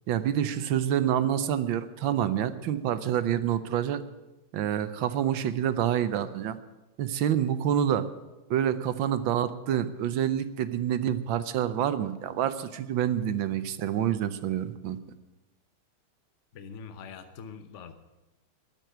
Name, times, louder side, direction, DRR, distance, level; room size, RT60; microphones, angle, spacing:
voice 1, 0.1-4.0 4.5-6.6 7.0-8.1 8.5-15.0, right 10 dB, 70° right, 13 dB, 1.4 m, -27 dB
voice 2, 16.5-17.9, left 6 dB, 55° left, 8 dB, 0.8 m, -43 dB
13.0 x 9.3 x 9.0 m, 1.0 s
omnidirectional pair, 2.4 m